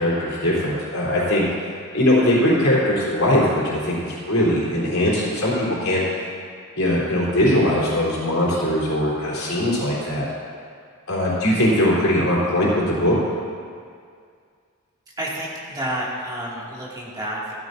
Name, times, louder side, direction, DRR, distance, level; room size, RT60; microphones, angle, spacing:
voice 1, 0.0-1.5 1.9-6.0 6.8-10.3 11.1-13.2, left 1 dB, 80° left, -7 dB, 3.6 m, -20 dB
voice 2, 15.2-17.5, right 1 dB, 20° right, -6 dB, 2.4 m, -29 dB
15.0 x 13.5 x 2.7 m, 2.2 s
head